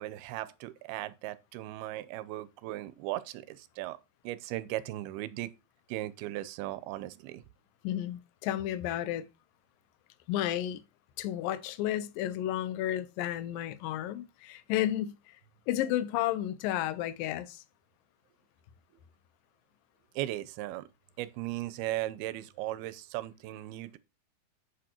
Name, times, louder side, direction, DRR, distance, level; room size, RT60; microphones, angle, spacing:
voice 1, 0.0-4.0 4.2-5.5 5.9-7.4 20.2-20.9 21.2-24.0, right 15 dB, 90° right, 2.6 m, -37 dB
voice 2, 7.8-9.3 10.3-10.8 11.2-15.2 15.7-17.6, left 12 dB, 75° left, 2.4 m, -32 dB
8.5 x 7.7 x 2.9 m
omnidirectional pair, 4.3 m